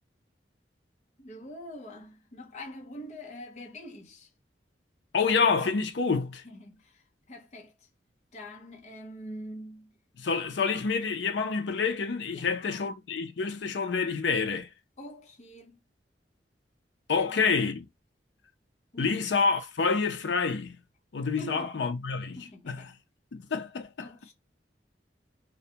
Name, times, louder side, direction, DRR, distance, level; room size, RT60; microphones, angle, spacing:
voice 1, 1.2-4.3 6.4-7.0 7.3-7.7 8.3-9.9 12.3-12.9 15.0-15.8 17.2-17.5 18.9-19.3 21.3-21.7 22.4-23.0 24.0-24.3, equal, 40° left, 0.7 m, -44 dB
voice 2, 5.1-6.4 10.2-14.7 17.1-17.9 19.0-20.8 21.1-22.9 23.3-24.1, left 5 dB, 75° left, 0.5 m, -28 dB
2.4 x 2.1 x 2.8 m
head